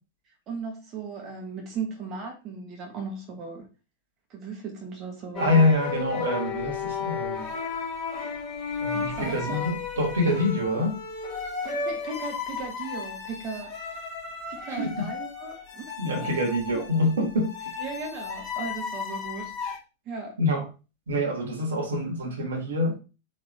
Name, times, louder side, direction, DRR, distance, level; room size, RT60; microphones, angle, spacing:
voice 1, 0.5-3.7 4.3-5.6 8.9-9.7 11.6-14.0 14.5-16.3 16.7-16.9 17.8-19.5 20.1-20.4, right 4 dB, 35° right, 1 dB, 1.1 m, -37 dB
sound 1, 5.4-19.8, left 6 dB, 25° left, 1.6 m, -34 dB
voice 2, 5.4-7.5 8.8-10.9 14.7-15.1 16.0-17.7 20.4-20.6 21.1-22.9, left 1 dB, 65° right, 2 dB, 1.3 m, -25 dB
4.0 x 2.9 x 3.3 m, 0.30 s
figure-of-eight pair, 90°, 0 cm